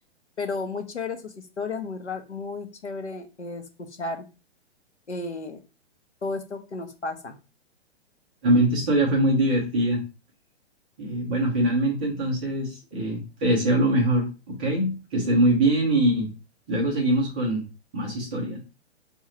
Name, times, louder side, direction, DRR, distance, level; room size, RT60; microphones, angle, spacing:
voice 1, 0.4-3.6 4.0-4.2 5.1-5.6 6.2-7.3, left 3 dB, 80° left, 6 dB, 0.9 m, -33 dB
voice 2, 8.4-10.0 11.0-16.3 16.7-17.6 17.9-18.6, right 1 dB, 10° right, -3 dB, 0.3 m, -23 dB
4.5 x 2.3 x 2.9 m, 0.31 s
figure-of-eight pair, 120°, 34 cm